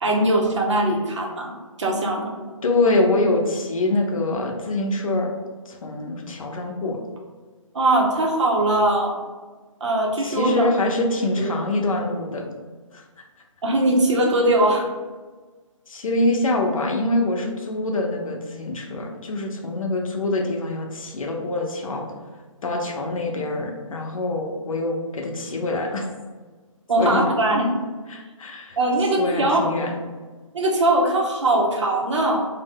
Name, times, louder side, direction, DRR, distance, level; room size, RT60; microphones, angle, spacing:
voice 1, 0.0-2.3 7.7-9.2 9.8-10.7 11.3-11.5 13.6-14.9 26.9-27.8 28.8-29.7 30.5-32.5, right 1 dB, 55° right, 0 dB, 0.7 m, -21 dB
voice 2, 2.6-5.3 5.7-7.0 10.2-12.4 12.9-13.0 15.9-22.0 22.6-26.1 27.0-27.2 28.1-28.8 29.2-29.9, left 2 dB, 75° left, 2 dB, 0.7 m, -24 dB
2.7 x 2.0 x 3.5 m, 1.3 s
hypercardioid pair, 160°, 18 cm